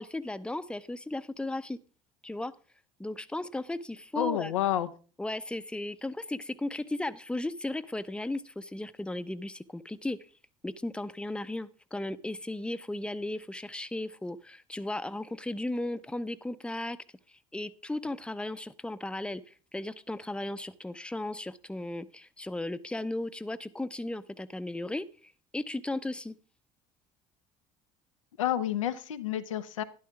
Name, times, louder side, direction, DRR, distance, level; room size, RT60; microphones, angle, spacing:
voice 1, 0.0-1.8 2.2-2.5 3.0-4.5 5.2-10.3 10.6-17.0 17.5-26.3, left 1 dB, 5° left, 12 dB, 0.8 m, -36 dB
voice 2, 4.2-4.9 28.4-29.8, left 11 dB, 85° left, 9 dB, 0.8 m, -29 dB
12.5 x 11.0 x 3.5 m, 0.36 s
hypercardioid pair, 60°, 16 cm